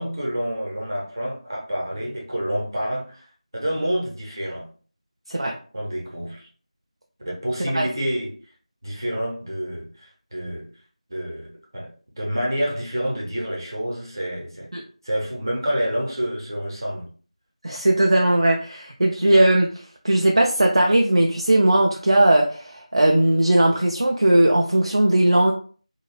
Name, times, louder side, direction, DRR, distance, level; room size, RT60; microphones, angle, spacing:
voice 1, 0.0-3.2 3.5-4.7 5.7-6.4 7.2-8.3 8.8-10.7 11.1-11.9 12.2-14.7 15.0-17.1, equal, 35° right, -3 dB, 0.8 m, -28 dB
voice 2, 17.6-19.7 20.0-25.5, right 1 dB, 50° right, 1 dB, 0.4 m, -18 dB
3.3 x 2.3 x 2.2 m, 0.41 s
figure-of-eight pair, 170°, 4 cm